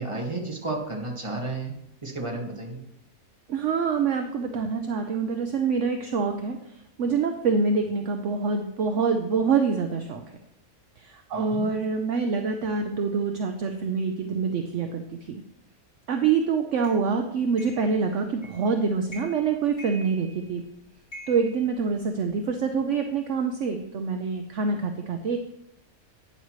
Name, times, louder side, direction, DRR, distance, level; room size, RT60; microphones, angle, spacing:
voice 1, 0.0-1.7 2.0-2.8 11.3-11.7, right 2 dB, 20° right, 0 dB, 1.9 m, -32 dB
voice 2, 3.5-10.2 11.0-15.4 16.1-20.6 21.3-25.4, right 5 dB, 60° right, 5 dB, 1.0 m, -26 dB
sound 1, 16.8-17.0 17.6-17.9 18.4-18.7 19.1-19.5 19.8-20.6 21.1-22.4, equal, 30° left, 3.6 m, -45 dB
11.5 x 9.5 x 3.1 m, 0.80 s
omnidirectional pair, 1.5 m